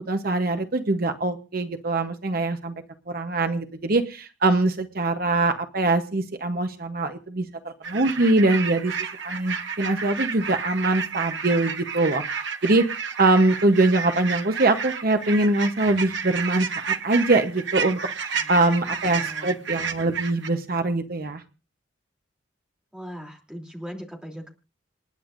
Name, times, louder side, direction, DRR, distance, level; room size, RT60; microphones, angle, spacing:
voice 1, 0.0-2.7 3.1-7.4 7.9-8.9 9.2-12.2 12.6-12.8 13.2-21.4, right 2 dB, 50° right, 7 dB, 1.0 m, -23 dB
sound 1, 7.8-20.5, right 6 dB, 65° right, 1.6 m, -31 dB
voice 2, 18.3-18.8 19.0-19.6 22.9-24.5, equal, 5° right, 0 dB, 3.1 m, -40 dB
28.0 x 10.0 x 2.6 m, 0.32 s
head